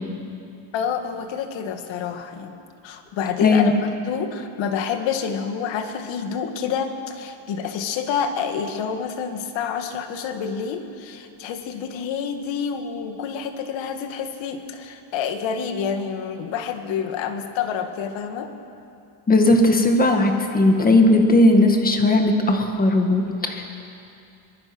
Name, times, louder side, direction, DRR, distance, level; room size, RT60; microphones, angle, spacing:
voice 1, 0.7-3.7 4.1-18.5, left 7 dB, 60° left, 6 dB, 2.0 m, -28 dB
voice 2, 3.4-3.7 19.3-23.7, left 2 dB, 15° left, 4 dB, 1.9 m, -17 dB
24.0 x 20.5 x 6.2 m, 2.6 s
cardioid pair, 160°, 50 cm